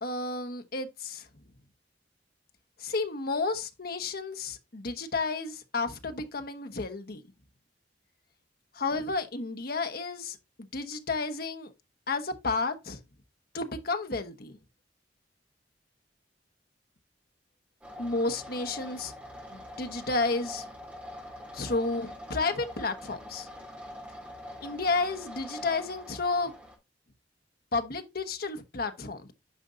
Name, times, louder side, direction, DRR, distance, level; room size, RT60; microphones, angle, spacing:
voice 1, 0.0-1.3 2.8-7.2 8.7-10.4 10.7-11.7 12.1-13.0 13.5-14.6 18.0-19.1 19.5-20.6 21.5-23.5 24.6-26.5 27.7-29.3, left 3 dB, 55° left, 1.2 m, -31 dB
sound 1, 17.8-26.8, equal, 10° right, 3.2 m, -44 dB
10.0 x 5.4 x 2.6 m
head